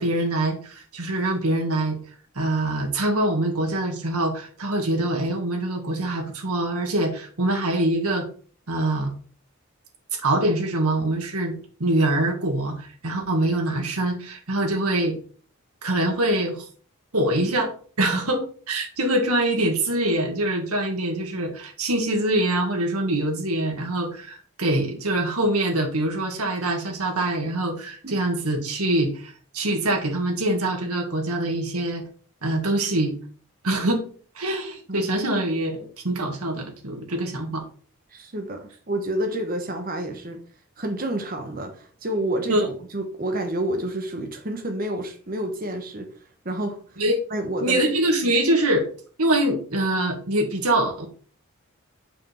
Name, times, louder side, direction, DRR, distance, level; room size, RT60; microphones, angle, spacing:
voice 1, 0.0-2.0 2.4-8.3 8.7-9.1 10.1-15.2 15.8-16.7 17.1-17.7 18.0-32.0 32.4-33.1 33.6-34.1 34.4-37.6 42.5-42.6 47.0-47.2 47.6-48.9 49.2-51.1, right 1 dB, 90° right, 2 dB, 1.9 m, -24 dB
voice 2, 38.1-40.4 40.8-46.1 46.4-47.0 47.3-47.8, right 1 dB, 40° right, 5 dB, 1.1 m, -29 dB
5.8 x 5.2 x 4.3 m, 0.42 s
head